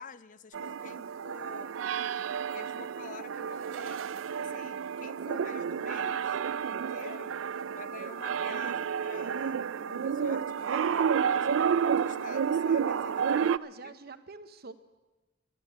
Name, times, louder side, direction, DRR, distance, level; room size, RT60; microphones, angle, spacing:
voice 1, 0.0-1.7 2.5-6.4 6.7-7.3 7.7-13.5 13.8-14.0, left 5 dB, 40° left, 14 dB, 0.5 m, -48 dB
sound 1, 0.5-13.6, right 7 dB, 80° right, 0.4 m, -30 dB
voice 2, 13.3-14.7, right 3 dB, 55° right, 11 dB, 0.8 m, -46 dB
12.0 x 11.5 x 8.2 m, 1.1 s
head